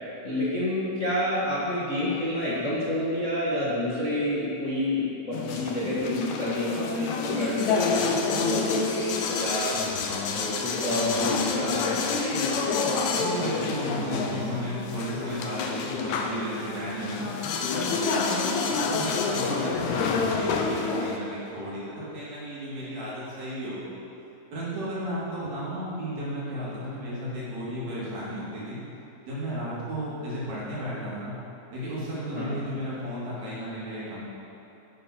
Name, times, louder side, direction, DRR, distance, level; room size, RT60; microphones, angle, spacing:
voice 1, 0.2-9.7 10.3-12.0 32.3-32.5, left 1 dB, 35° left, -9 dB, 1.5 m, -29 dB
sound 1, 5.3-21.2, left 4 dB, 80° left, 2.1 m, -28 dB
voice 2, 13.2-17.3 17.7-24.0 24.5-28.8 29.3-31.4 31.7-34.2, equal, 65° right, -8 dB, 4.1 m, -34 dB
11.5 x 8.9 x 4.4 m, 3.0 s
omnidirectional pair, 3.4 m